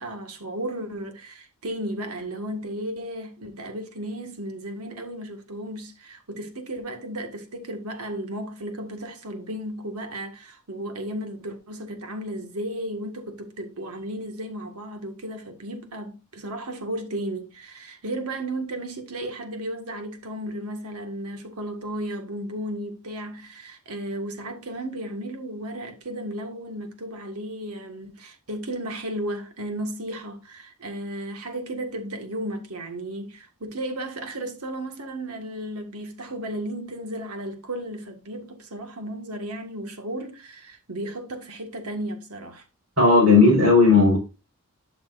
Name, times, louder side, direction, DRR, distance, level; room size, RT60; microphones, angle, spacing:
voice 1, 0.0-42.6, right 1 dB, 85° right, 1.7 m, -34 dB
voice 2, 43.0-44.2, left 3 dB, 65° right, 4.4 m, -15 dB
12.0 x 6.1 x 2.5 m
head